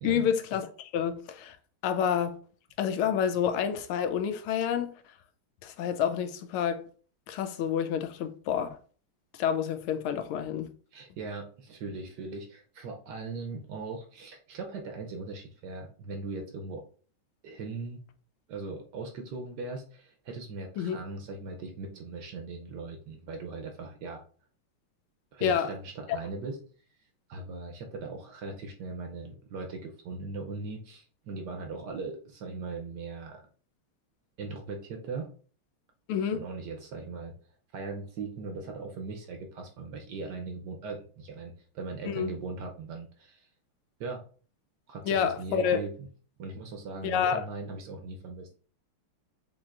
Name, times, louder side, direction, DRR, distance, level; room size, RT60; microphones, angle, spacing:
voice 1, 0.0-1.6 1.8-2.4 2.8-4.9 5.6-6.8 7.3-8.8 9.4-10.7 20.8-21.0 25.4-25.7 36.1-36.4 42.0-42.3 45.1-45.8 47.0-47.5, left 8 dB, 90° left, 1.5 m, -28 dB
voice 2, 10.9-16.8 17.4-18.0 18.5-24.2 25.3-26.6 27.3-33.4 34.4-35.3 36.3-37.3 37.7-43.5 44.0-44.2 44.9-45.9 46.4-48.5, right 3 dB, 70° right, 1.1 m, -39 dB
7.1 x 2.8 x 2.4 m
omnidirectional pair, 2.3 m